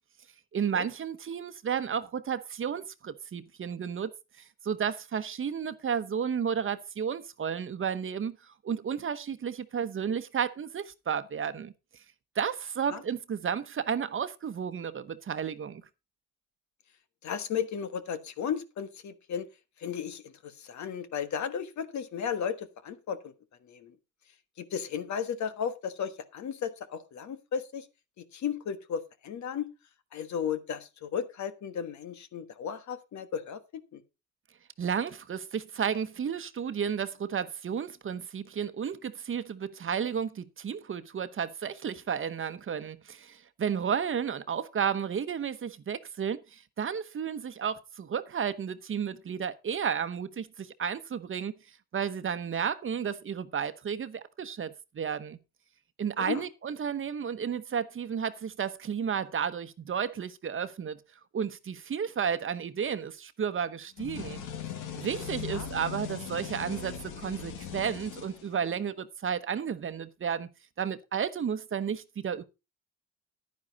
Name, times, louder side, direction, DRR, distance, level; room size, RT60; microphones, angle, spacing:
voice 1, 0.5-4.1 4.4-11.7 12.4-15.8 34.8-51.5 51.9-55.4 56.0-61.0 61.3-64.4 64.9-70.5 70.8-72.4, right 7 dB, 45° right, 1.0 m, -32 dB
voice 2, 17.2-19.5 19.8-23.3 23.7-23.9 24.6-27.9 28.3-29.7 30.1-33.6 33.9-34.0 56.2-56.4 65.5-65.7, left 7 dB, 70° left, 1.5 m, -34 dB
sound 1, 64.0-68.9, left 8 dB, 90° left, 1.9 m, -39 dB
10.5 x 9.8 x 4.0 m
cardioid pair, 90°, 30 cm